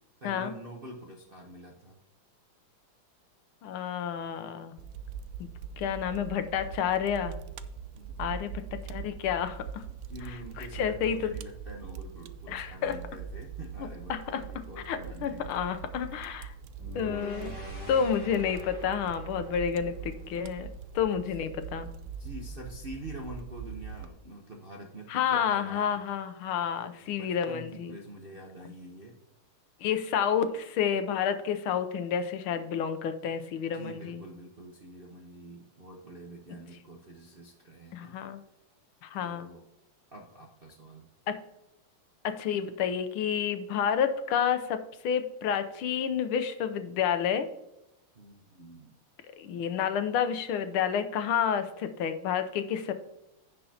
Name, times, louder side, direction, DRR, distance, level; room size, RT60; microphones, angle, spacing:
voice 1, 0.2-2.0 7.9-8.8 10.1-15.5 16.9-17.8 22.2-25.9 27.0-29.1 33.7-38.2 39.2-39.6 40.1-41.1 48.1-48.9, right 1 dB, 45° right, -1 dB, 0.7 m, -46 dB
voice 2, 3.6-4.7 5.8-7.4 8.2-9.8 10.2-11.3 12.5-13.0 13.8-14.4 14.8-16.5 16.9-17.5 17.9-20.7 20.9-21.9 25.1-28.0 29.8-34.2 37.9-38.4 39.0-39.5 41.3-41.4 42.2-47.5 49.4-52.9, left 8 dB, 80° left, 9 dB, 1.6 m, -30 dB
Fire, 4.8-24.1, right 6 dB, 75° right, 1.2 m, -42 dB
sound 1, 16.8-21.0, equal, 40° left, 4.3 m, -44 dB
16.0 x 5.4 x 2.8 m, 0.89 s
omnidirectional pair, 2.4 m